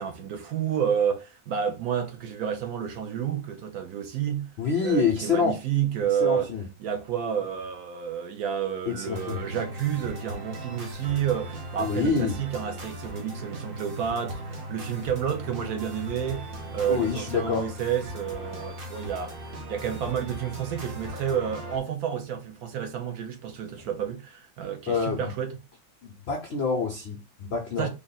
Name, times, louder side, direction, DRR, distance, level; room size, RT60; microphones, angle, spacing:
voice 1, 0.0-4.5 4.8-6.5 6.8-16.5 16.7-19.4 19.7-25.6 27.8-27.9, right 8 dB, 70° right, 1.0 m, -30 dB
voice 2, 4.6-5.5 6.2-6.6 8.9-9.4 11.8-12.4 16.9-17.7 24.9-25.3 26.0-27.9, left 5 dB, 90° left, 0.5 m, -26 dB
sound 1, 9.1-21.8, right 1 dB, 50° right, 0.7 m, -38 dB
3.5 x 2.1 x 3.9 m
omnidirectional pair, 1.9 m